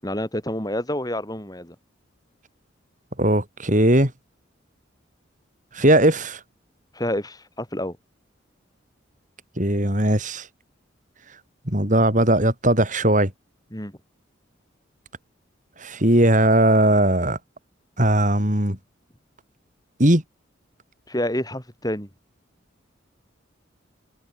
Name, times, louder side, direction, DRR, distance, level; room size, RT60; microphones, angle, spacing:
voice 1, 0.0-1.7 6.9-8.0 13.7-13.9 21.1-22.1, left 1 dB, 20° left, 6.8 m, -28 dB
voice 2, 3.2-4.1 5.7-6.4 9.6-10.5 11.7-13.3 15.8-17.4 18.0-18.8 20.0-20.2, right 1 dB, 40° right, 6.1 m, -18 dB
head